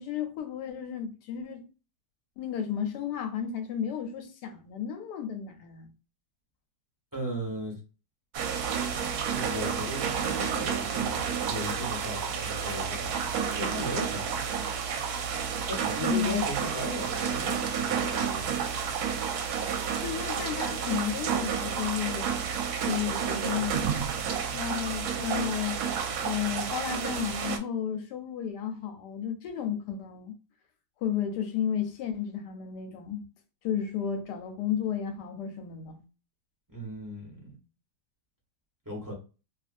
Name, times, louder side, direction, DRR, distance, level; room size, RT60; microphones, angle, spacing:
voice 1, 0.0-1.7 2.4-5.9 16.0-16.4 20.0-22.3 22.8-23.9 24.5-25.8 26.2-30.3 31.0-33.2 33.6-36.0, left 8 dB, 85° left, 1.2 m, -33 dB
voice 2, 7.1-7.8 9.3-13.1 13.5-14.4 15.7-18.6 36.7-37.6 38.8-39.1, equal, 20° right, 0.6 m, -37 dB
sound 1, 8.3-27.6, right 7 dB, 75° right, 1.0 m, -30 dB
2.7 x 2.5 x 2.4 m
omnidirectional pair, 1.8 m